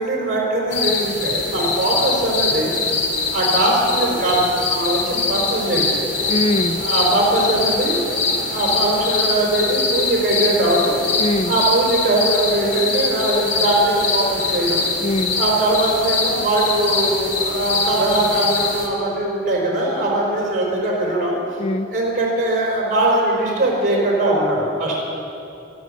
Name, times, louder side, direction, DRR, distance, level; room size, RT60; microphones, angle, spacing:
voice 1, 0.0-2.7 3.3-6.0 6.8-7.9 8.5-10.9 11.5-14.8 15.4-21.3 21.9-25.0, right 1 dB, 45° right, -3 dB, 4.1 m, -20 dB
sound 1, 0.7-18.9, left 3 dB, 85° left, 2.1 m, -23 dB
voice 2, 6.3-6.8 11.2-11.6 15.0-15.4 21.6-21.9, left 2 dB, 35° left, 8 dB, 0.5 m, -22 dB
23.0 x 7.9 x 6.3 m, 2.7 s
head